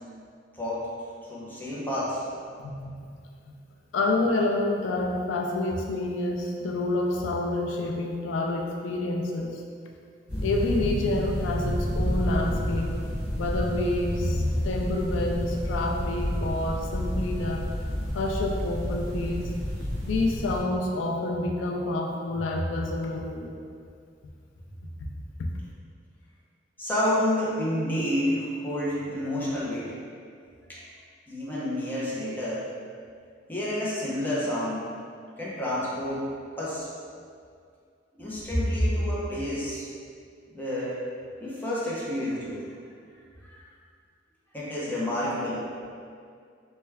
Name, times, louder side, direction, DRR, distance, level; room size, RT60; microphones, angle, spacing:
voice 1, 0.5-0.9 1.3-2.2 26.8-29.9 30.7-30.8 31.3-32.7 33.5-34.9 35.4-36.3 36.6-36.9 38.2-39.8 40.5-41.0 41.4-42.6 43.4-43.6 44.5-45.6, left 1 dB, 10° left, -8 dB, 0.6 m, -29 dB
voice 2, 2.6-2.9 3.5-3.6 3.9-9.6 10.4-13.0 13.4-17.7 18.1-19.5 20.0-23.5 25.0-25.1 25.4-25.5, left 2 dB, 80° left, 1 dB, 0.3 m, -28 dB
sound 1, 10.3-20.6, equal, 25° right, 1.2 m, -30 dB
3.2 x 2.2 x 3.3 m, 2.2 s
head